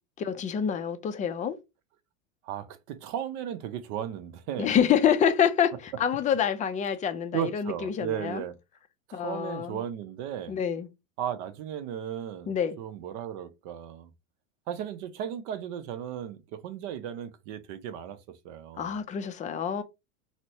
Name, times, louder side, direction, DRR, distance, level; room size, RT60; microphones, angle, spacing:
voice 1, 0.2-1.6 4.6-8.4 9.1-9.8 10.5-10.9 12.5-12.8 18.8-19.8, left 8 dB, 20° left, 0.4 m, -27 dB
voice 2, 2.4-4.7 7.3-8.6 9.1-10.6 11.2-14.1 14.7-19.0, right 10 dB, 60° right, 0.7 m, -35 dB
4.0 x 2.1 x 2.8 m
supercardioid pair, 115°, 39 cm